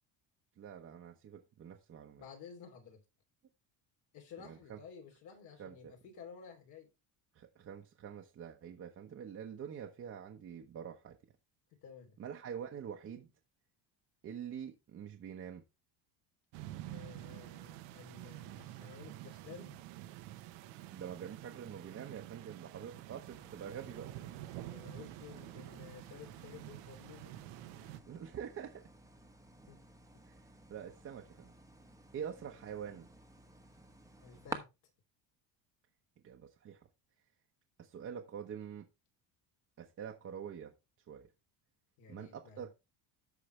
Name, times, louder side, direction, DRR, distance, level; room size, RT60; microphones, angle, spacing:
voice 1, 0.6-2.2 4.4-4.8 5.6-5.9 7.3-11.2 12.2-13.3 14.2-15.6 20.9-24.1 28.1-28.8 30.2-30.4 30.7-31.5 32.1-33.1 36.2-36.9 37.8-38.9 39.8-40.7 41.1-41.3 42.1-42.7, right 8 dB, 35° right, 1.0 m, -46 dB
voice 2, 2.2-3.0 4.1-6.9 11.7-12.2 16.9-19.8 24.6-27.3 29.7-29.8 30.1-30.2 32.4-32.6 34.2-34.7 42.0-42.7, left 7 dB, 65° left, 3.0 m, -53 dB
sound 1, 16.5-28.0, right 14 dB, 90° right, 1.0 m, -49 dB
sound 2, 23.3-34.6, right 1 dB, 10° right, 1.0 m, -53 dB
13.5 x 4.9 x 3.2 m
cardioid pair, 140°, 41 cm